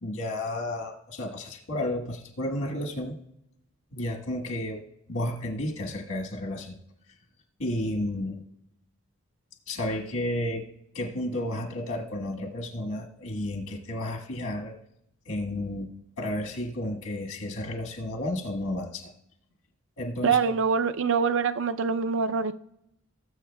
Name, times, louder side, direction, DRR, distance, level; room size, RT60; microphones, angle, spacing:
voice 1, 0.0-3.2 3.9-4.8 5.1-6.7 7.6-8.4 9.7-10.6 10.9-14.7 15.2-19.1 20.0-20.6, left 1 dB, 75° left, 1 dB, 1.4 m, -32 dB
voice 2, 20.2-22.5, right 5 dB, 60° right, 11 dB, 0.5 m, -24 dB
19.5 x 7.4 x 2.2 m, 0.78 s
head